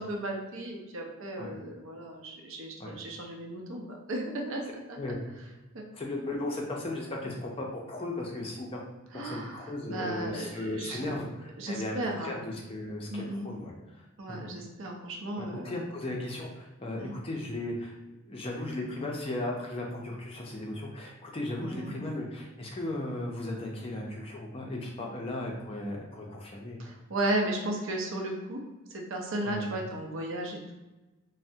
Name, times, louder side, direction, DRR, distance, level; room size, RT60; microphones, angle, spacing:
voice 1, 0.0-5.0 5.7-5.8 9.1-11.1 11.6-12.3 13.1-13.5 14.2-15.8 17.0-17.1 21.6-21.9 26.8-28.6 28.9-30.7, right 1 dB, 65° right, 0 dB, 0.6 m, -35 dB
voice 2, 5.9-8.8 9.1-14.4 15.4-18.0 18.3-26.9 29.4-29.7, left 1 dB, 25° left, -1 dB, 0.4 m, -36 dB
3.3 x 2.0 x 2.7 m, 1.1 s
head